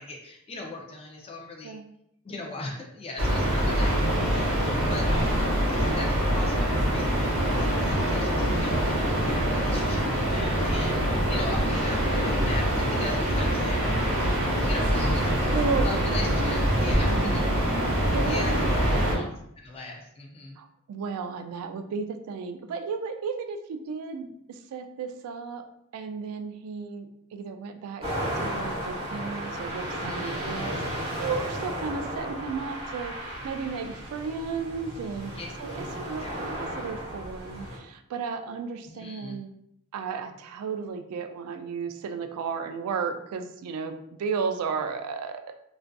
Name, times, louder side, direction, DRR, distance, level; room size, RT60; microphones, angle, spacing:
voice 1, 0.0-1.8 2.2-4.0 4.3-13.8 14.6-15.6 15.8-17.4 18.2-20.6 30.0-30.5 35.3-35.5 36.2-36.4 38.9-39.4, left 2 dB, 25° left, 0 dB, 0.4 m, -39 dB
sound 1, 3.2-19.1, equal, 60° right, 0.8 m, -24 dB
voice 2, 15.5-16.1 17.0-17.6 17.9-18.5 18.9-19.1 20.6-25.6 25.9-28.1 28.4-35.3 35.6-39.5 39.9-45.5, right 5 dB, 80° right, 11 dB, 0.3 m, -34 dB
sound 2, 28.0-37.8, equal, 25° right, 0.8 m, -34 dB
2.5 x 2.3 x 2.2 m, 0.76 s
head